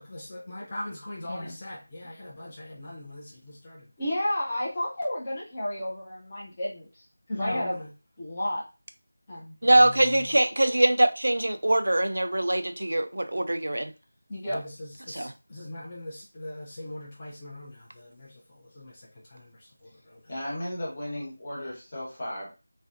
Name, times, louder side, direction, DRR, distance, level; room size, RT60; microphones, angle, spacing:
voice 1, 0.0-8.6 9.3-10.3 14.3-18.4 18.7-19.0 19.3-20.2, left 1 dB, 20° left, -6 dB, 0.5 m, -35 dB
voice 2, 9.6-13.9 15.1-15.3, right 1 dB, 75° right, 9 dB, 0.4 m, -23 dB
voice 3, 20.3-22.5, left 1 dB, 40° left, -4 dB, 1.3 m, -35 dB
2.5 x 2.1 x 2.5 m, 0.30 s
figure-of-eight pair, 170°, 0 cm